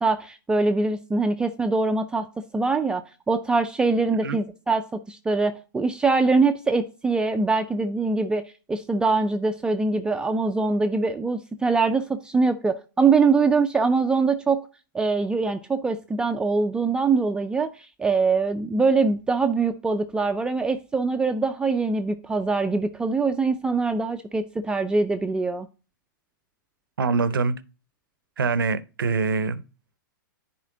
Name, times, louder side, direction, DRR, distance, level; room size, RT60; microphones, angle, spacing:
voice 1, 0.0-2.3 2.5-8.4 8.7-14.6 14.9-25.7, right 4 dB, 10° right, 0.4 m, -23 dB
voice 2, 27.0-27.5 28.4-29.6, right 4 dB, 85° right, 0.7 m, -24 dB
10.0 x 4.3 x 3.8 m
hypercardioid pair, 125°, 11 cm